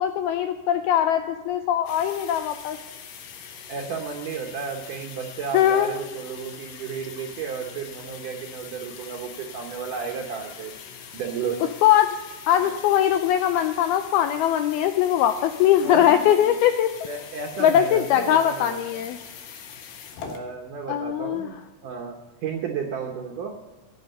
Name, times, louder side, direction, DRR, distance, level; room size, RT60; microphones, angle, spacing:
voice 1, 0.0-2.8 5.5-5.9 11.8-12.1 12.5-16.9 17.6-19.2 20.9-21.5, left 11 dB, 85° left, 8 dB, 2.2 m, -21 dB
sound 1, 1.9-20.4, left 7 dB, 70° left, 3.2 m, -43 dB
voice 2, 3.7-10.7 11.1-11.7 12.6-12.7 15.8-16.5 17.1-19.0 20.2-23.6, right 6 dB, 75° right, 2 dB, 1.9 m, -33 dB
14.5 x 8.4 x 6.6 m, 1.2 s
omnidirectional pair, 5.0 m